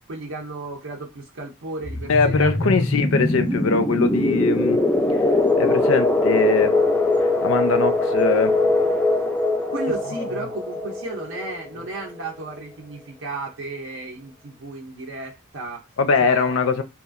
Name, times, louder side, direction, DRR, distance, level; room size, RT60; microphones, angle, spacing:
voice 1, 0.1-2.5 9.7-15.9 16.2-16.6, right 2 dB, 65° right, 0.6 m, -34 dB
sound 1, 1.8-12.3, left 2 dB, 10° left, 0.3 m, -22 dB
voice 2, 2.1-4.8 5.6-6.7 7.4-8.6 16.0-16.8, left 4 dB, 70° left, 0.5 m, -21 dB
2.9 x 2.4 x 2.4 m
head